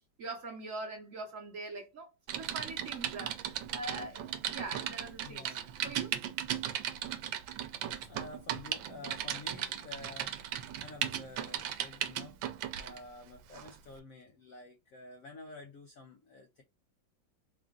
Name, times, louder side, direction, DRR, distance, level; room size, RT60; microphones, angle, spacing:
voice 1, 0.2-5.6 5.8-6.1, right 2 dB, 55° right, 1.0 m, -43 dB
Typing, 2.3-13.0 13.5-13.7, right 10 dB, 85° right, 1.3 m, -37 dB
voice 2, 5.2-5.7 8.0-12.4 12.7-16.6, left 3 dB, 75° left, 0.8 m, -50 dB
3.7 x 2.5 x 3.6 m
omnidirectional pair, 2.1 m